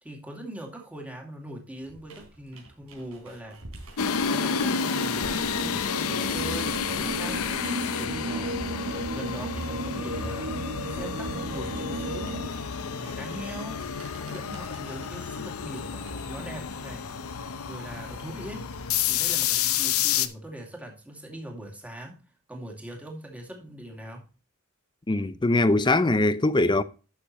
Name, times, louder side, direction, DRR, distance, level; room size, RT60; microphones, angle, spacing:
voice 1, 0.0-3.6 3.9-8.7 9.1-12.5 12.9-13.9 14.2-18.7 19.1-22.2 22.5-24.3, right 1 dB, 5° right, 2.3 m, -41 dB
sound 1, 1.8-9.2 9.5-19.2, right 1 dB, 85° right, 3.7 m, -48 dB
sound 2, 4.0-20.3, left 7 dB, 80° left, 0.7 m, -30 dB
sound 3, 5.2-12.5, right 2 dB, 55° right, 0.7 m, -35 dB
voice 2, 25.1-26.8, left 2 dB, 20° left, 0.6 m, -22 dB
11.5 x 6.8 x 3.0 m
head